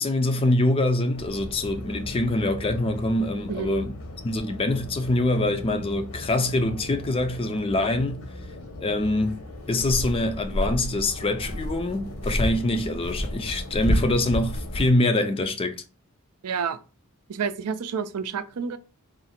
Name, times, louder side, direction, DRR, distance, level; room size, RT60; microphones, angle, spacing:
voice 1, 0.0-4.0 4.2-8.2 8.8-9.4 9.7-15.8, left 2 dB, 25° left, 0.4 m, -24 dB
sound 1, 1.1-14.9, equal, 65° left, 0.9 m, -33 dB
voice 2, 16.4-16.8 17.3-18.8, right 6 dB, 90° right, 0.5 m, -29 dB
3.7 x 2.5 x 4.2 m
head